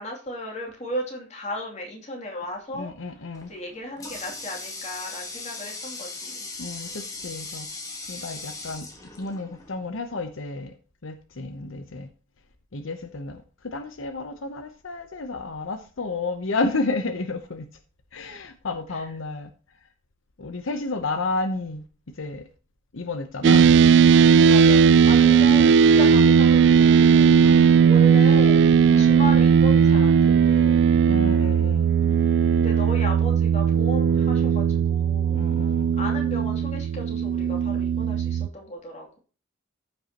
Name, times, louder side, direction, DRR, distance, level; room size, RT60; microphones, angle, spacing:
voice 1, 0.0-2.9 3.5-6.5 18.9-19.0 24.5-27.4 27.9-28.6 29.0-30.8 32.5-35.4 36.0-39.2, left 1 dB, 35° left, 0 dB, 2.8 m, -35 dB
voice 2, 2.7-3.5 6.6-7.7 8.1-8.9 9.2-10.7 11.0-12.1 12.7-17.6 18.1-19.5 20.4-21.8 22.2-22.4 22.9-23.6 27.4-27.7 28.8-29.1 31.0-31.9 35.3-35.9, left 3 dB, 75° left, 8 dB, 0.8 m, -31 dB
Water tap faucet, 3.3-9.8, left 3 dB, 15° left, 1.5 m, -38 dB
sound 1, 23.4-38.5, right 7 dB, 60° right, 0.3 m, -17 dB
14.0 x 5.6 x 2.9 m, 0.37 s
head